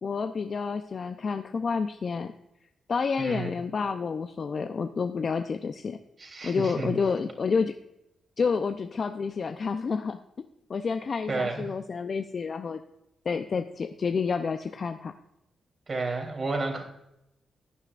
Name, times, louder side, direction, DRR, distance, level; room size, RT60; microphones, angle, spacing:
voice 1, 0.0-2.3 2.9-6.0 6.4-7.7 8.4-10.2 10.7-12.8 13.3-15.1, left 5 dB, 55° left, 8 dB, 0.6 m, -29 dB
voice 2, 3.2-3.5 6.2-6.9 11.3-11.7 15.9-16.8, right 3 dB, 45° right, 2 dB, 3.3 m, -31 dB
15.5 x 9.9 x 2.5 m, 0.85 s
supercardioid pair, 45°, 0 cm